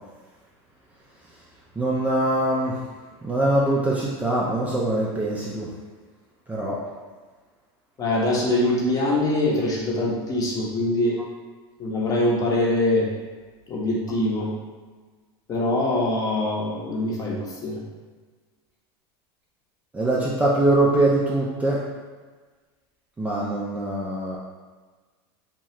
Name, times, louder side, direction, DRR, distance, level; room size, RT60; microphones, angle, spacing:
voice 1, 1.8-2.8 3.2-5.7 6.5-6.8 19.9-21.8 23.2-24.4, right 1 dB, 10° right, -6 dB, 0.4 m, -23 dB
voice 2, 8.0-11.2 11.8-13.1 13.7-14.5 15.5-17.8, left 1 dB, 25° left, -3 dB, 0.7 m, -23 dB
2.8 x 2.3 x 3.1 m, 1.4 s
supercardioid pair, 120°, 13 cm